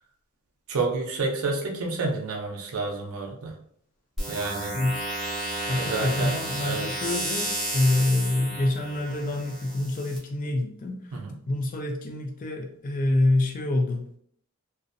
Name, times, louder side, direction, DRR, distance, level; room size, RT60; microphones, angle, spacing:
voice 1, 0.7-3.6 4.3-4.7 5.7-6.4 6.6-6.9 11.1-11.4, right 3 dB, 70° right, 1 dB, 0.5 m, -29 dB
sound 1, 4.2-10.2, right 1 dB, ahead, 1.0 m, -32 dB
voice 2, 4.7-5.1 5.7-11.1 11.5-14.1, left 2 dB, 35° left, 2 dB, 0.3 m, -26 dB
2.5 x 2.0 x 2.5 m, 0.65 s
head